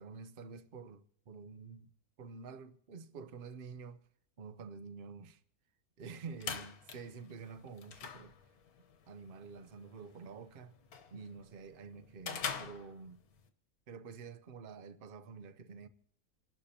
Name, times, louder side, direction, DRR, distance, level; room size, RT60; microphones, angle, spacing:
voice 1, 0.0-1.9 2.2-4.0 4.4-5.4 6.0-8.4 9.1-10.8 11.1-13.2 13.9-15.9, right 5 dB, 45° right, 0.8 m, -48 dB
sound 1, 6.0-13.5, left 6 dB, 75° left, 1.5 m, -46 dB
28.0 x 12.0 x 2.8 m
omnidirectional pair, 1.6 m